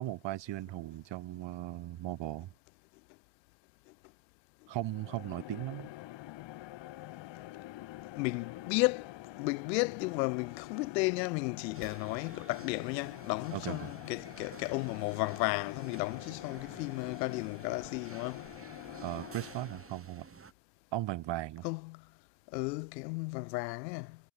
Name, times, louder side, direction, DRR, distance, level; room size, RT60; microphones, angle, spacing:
voice 1, 0.0-2.5 4.7-5.9 13.5-13.9 19.0-20.3 20.9-21.7, right 15 dB, 60° right, 2.5 m, -37 dB
sound 1, 4.7-20.0, left 16 dB, 60° left, 2.2 m, -46 dB
voice 2, 8.2-18.4 21.6-22.0 22.5-24.2, left 25 dB, 85° left, 0.9 m, -34 dB
sound 2, 11.7-20.5, right 5 dB, 25° right, 6.4 m, -53 dB
supercardioid pair, 75°, 49 cm